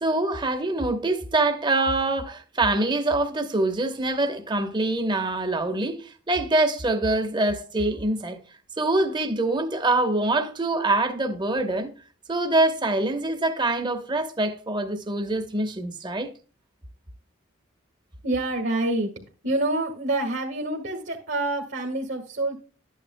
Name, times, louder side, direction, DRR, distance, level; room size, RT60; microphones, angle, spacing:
voice 1, 0.0-8.4 8.8-11.9 12.3-16.3, right 2 dB, 20° right, 1.0 m, -24 dB
voice 2, 18.2-19.1 19.4-22.6, right 2 dB, 55° right, 1.8 m, -27 dB
12.5 x 9.2 x 2.2 m
head